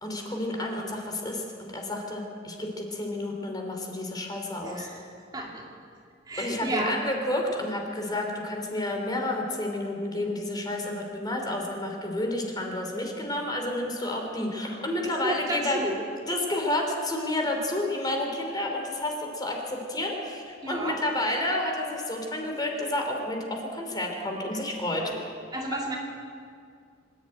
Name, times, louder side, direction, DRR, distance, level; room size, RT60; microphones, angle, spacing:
voice 1, 0.0-4.9 6.4-15.8 16.3-25.0, left 1 dB, 20° left, 2 dB, 3.2 m, -30 dB
voice 2, 4.6-5.0 5.3-5.6 6.2-6.9 15.0-16.0 20.6-21.0 24.5-24.6 25.0-25.2 25.5-26.0, right 1 dB, 20° right, -1 dB, 2.5 m, -32 dB
25.0 x 11.5 x 9.0 m, 2.2 s
head